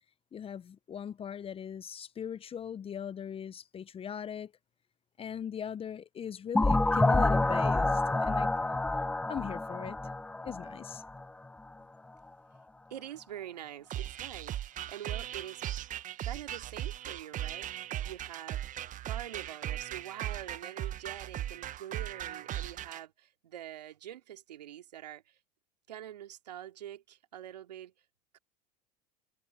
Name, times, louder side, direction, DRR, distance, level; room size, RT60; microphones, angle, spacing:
voice 1, 0.3-4.5 5.2-8.5 9.3-10.0 10.4-11.0, left 8 dB, 25° left, 0.9 m, -39 dB
sound 1, 6.5-11.2, left 2 dB, 5° left, 0.4 m, -28 dB
voice 2, 12.9-15.6 15.9-18.8 19.0-25.4 25.9-27.9 28.3-28.4, right 11 dB, 85° right, 2.7 m, -45 dB
sound 2, 13.9-23.0, right 12 dB, 40° right, 1.2 m, -38 dB
hypercardioid pair, 85°, 21 cm